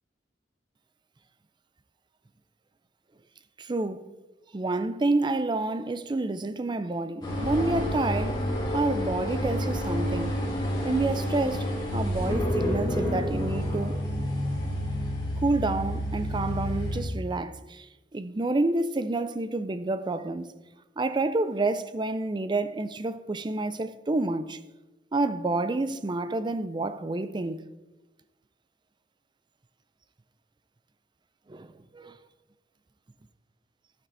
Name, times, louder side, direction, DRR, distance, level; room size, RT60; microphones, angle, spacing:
voice 1, 3.6-4.1 4.5-8.4 8.7-10.3 10.8-14.0 15.4-17.9 18.1-20.5 21.0-24.6 25.1-27.6 31.5-32.2, right 2 dB, 25° right, 0.5 m, -29 dB
sound 1, 7.2-17.0, equal, 25° left, 2.6 m, -29 dB
12.0 x 9.0 x 4.0 m
head